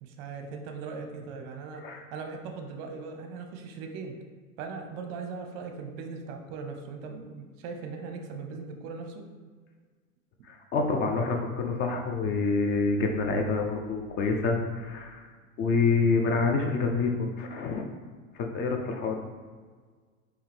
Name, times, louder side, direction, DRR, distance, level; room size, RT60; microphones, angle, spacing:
voice 1, 0.0-1.8 2.1-4.1 4.6-9.3, right 4 dB, 45° right, 4 dB, 0.7 m, -39 dB
voice 2, 10.5-15.3 15.6-17.8 18.4-19.2, left 4 dB, 25° left, 2 dB, 0.4 m, -27 dB
4.6 x 2.8 x 3.4 m, 1.5 s
hypercardioid pair, 90°, 42 cm